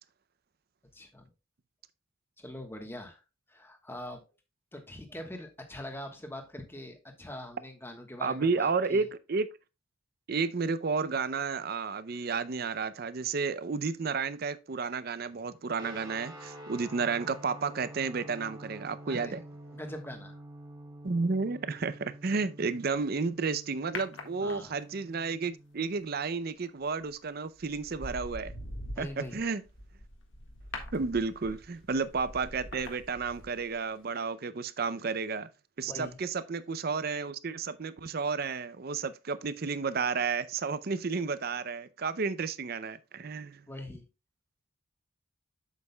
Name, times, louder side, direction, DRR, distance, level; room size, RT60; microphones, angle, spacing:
voice 1, 0.9-1.3 2.4-3.2 3.5-4.2 4.7-9.1 19.1-19.4 19.7-20.4 24.4-24.7 28.9-29.4 35.9-36.2 43.7-44.0, left 1 dB, 10° left, 1.2 m, -43 dB
voice 2, 8.2-9.5 10.3-19.4 21.0-28.5 29.0-29.6 30.9-35.5 35.8-43.6, right 4 dB, 45° right, 0.5 m, -32 dB
sound 1, 15.8-26.1, right 1 dB, 20° right, 2.0 m, -48 dB
sound 2, 23.9-25.0 26.8-27.1 27.6-33.8 34.1-34.2, left 1 dB, 60° left, 1.6 m, -43 dB
8.1 x 7.5 x 2.2 m
head